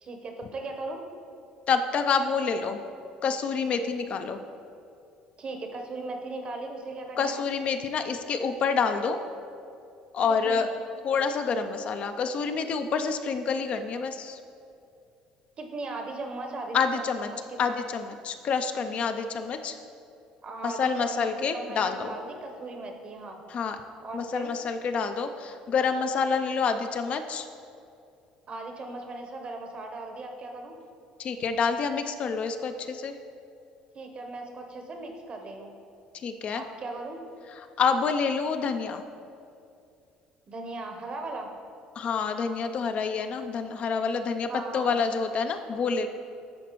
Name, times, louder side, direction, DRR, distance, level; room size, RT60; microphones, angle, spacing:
voice 1, 0.0-1.0 5.4-7.4 10.4-10.7 15.6-17.8 20.4-23.4 24.0-24.5 28.5-30.7 33.9-35.7 36.5-37.2 40.5-41.5 44.5-45.0, right 2 dB, 40° right, 3 dB, 0.9 m, -38 dB
voice 2, 1.7-2.8 3.2-4.4 7.2-9.2 10.1-10.7 11.0-14.4 16.7-17.3 17.6-19.8 20.6-22.1 23.5-23.8 24.1-27.5 31.2-33.1 36.2-36.6 37.8-39.0 42.0-46.1, left 5 dB, 50° left, 7 dB, 0.4 m, -27 dB
10.5 x 4.0 x 3.0 m, 2.5 s
supercardioid pair, 80°, 3 cm